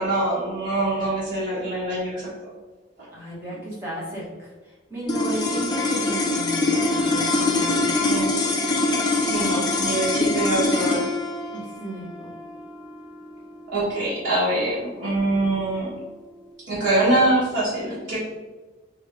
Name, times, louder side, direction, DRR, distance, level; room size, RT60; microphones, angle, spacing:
voice 1, 0.0-2.5 3.0-3.1 8.0-8.3 9.2-11.1 13.7-15.9 16.7-18.2, right 1 dB, 80° right, -9 dB, 1.2 m, -24 dB
voice 2, 3.1-7.9 11.5-12.3, right 1 dB, 15° right, -7 dB, 1.2 m, -34 dB
sound 1, 5.1-15.5, left 2 dB, 20° left, 0.5 m, -24 dB
3.6 x 3.2 x 3.3 m, 1.2 s
head